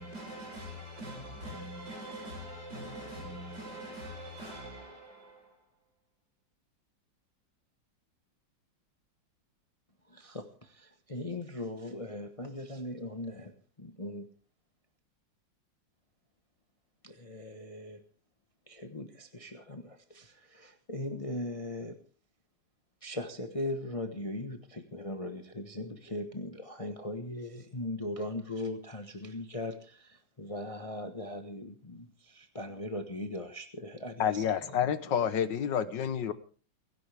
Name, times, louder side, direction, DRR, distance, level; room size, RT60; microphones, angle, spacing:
voice 1, 0.0-5.7, equal, 60° right, 7.5 m, -43 dB
voice 2, 10.1-13.5 13.8-14.3 17.0-18.0 18.7-22.0 23.0-34.9, left 1 dB, 20° left, 1.1 m, -39 dB
voice 3, 34.2-36.3, left 8 dB, 70° left, 1.7 m, -29 dB
30.0 x 11.0 x 3.5 m
omnidirectional pair, 2.0 m